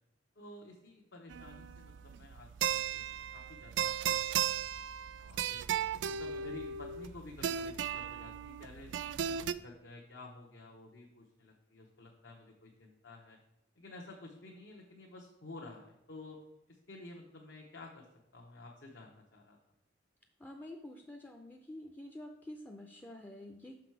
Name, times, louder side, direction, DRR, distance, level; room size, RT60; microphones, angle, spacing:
voice 1, 0.4-4.9 5.2-5.6 6.0-13.4 13.8-16.4 16.7-18.1 18.3-19.6, left 2 dB, 80° left, -1 dB, 0.9 m, -52 dB
sound 1, 1.3-9.5, right 9 dB, 75° right, 0.3 m, -36 dB
voice 2, 20.4-23.8, left 1 dB, 10° left, 3 dB, 0.4 m, -48 dB
5.9 x 5.6 x 4.6 m, 0.90 s
head